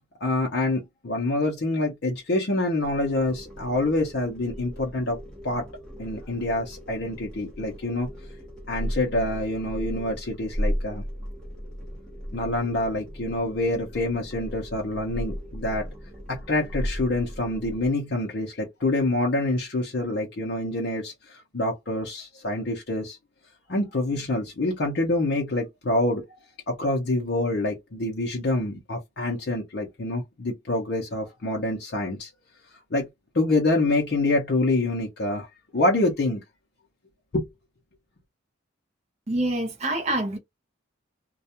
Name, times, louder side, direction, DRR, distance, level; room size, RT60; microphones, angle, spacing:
voice 1, 0.2-5.2 5.4-5.7 6.0-8.1 8.7-11.0 12.3-15.9 16.3-23.2 23.7-26.2 26.7-32.3 32.9-33.1 33.3-35.5 35.7-36.4 37.3-37.5, left 2 dB, 55° left, 0.6 m, -26 dB
sound 1, 2.8-17.9, equal, 5° left, 0.8 m, -36 dB
voice 2, 39.3-40.4, right 1 dB, 30° right, 0.5 m, -26 dB
2.3 x 2.1 x 2.7 m
head